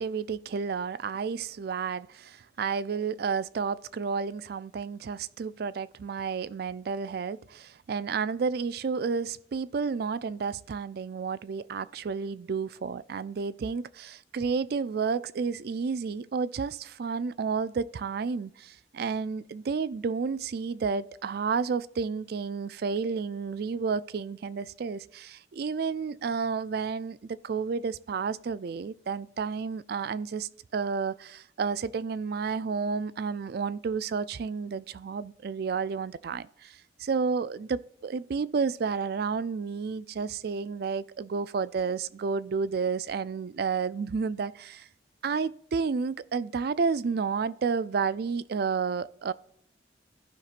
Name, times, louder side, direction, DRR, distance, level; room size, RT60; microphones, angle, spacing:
voice 1, 0.0-44.9 45.2-49.3, right 5 dB, 55° right, 0.4 m, -31 dB
15.0 x 5.8 x 2.5 m
head